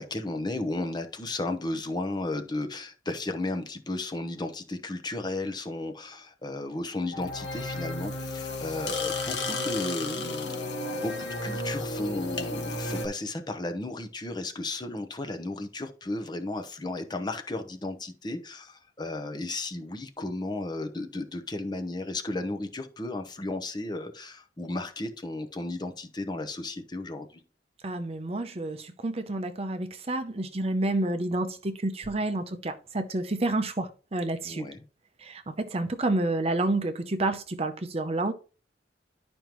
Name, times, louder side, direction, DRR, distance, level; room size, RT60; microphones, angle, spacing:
voice 1, 0.0-27.4 34.4-34.8, left 2 dB, 25° left, 0.9 m, -34 dB
sound 1, 7.1-13.1, left 2 dB, 75° left, 1.4 m, -32 dB
voice 2, 27.8-34.6 35.2-38.3, right 2 dB, 35° right, 0.7 m, -29 dB
11.0 x 5.2 x 3.0 m
head